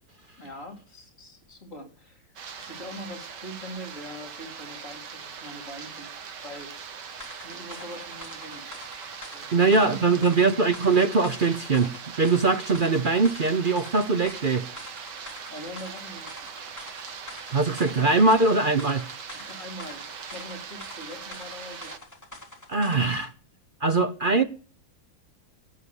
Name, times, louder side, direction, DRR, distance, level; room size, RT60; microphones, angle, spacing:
voice 1, 0.4-2.3 2.6-6.1 6.4-6.7 7.4-8.8 9.3-10.5 15.5-16.6 19.3-20.0 20.3-21.9 23.0-23.3, equal, 40° left, 4.6 m, -42 dB
sound 1, 2.4-22.0, right 6 dB, 65° right, 1.9 m, -41 dB
sound 2, 7.2-23.3, left 2 dB, 10° left, 3.5 m, -46 dB
voice 2, 9.5-11.9 12.2-14.7 17.5-19.1 22.7-23.3 23.8-24.4, right 3 dB, 50° right, 0.6 m, -22 dB
18.0 x 7.6 x 8.1 m
omnidirectional pair, 2.0 m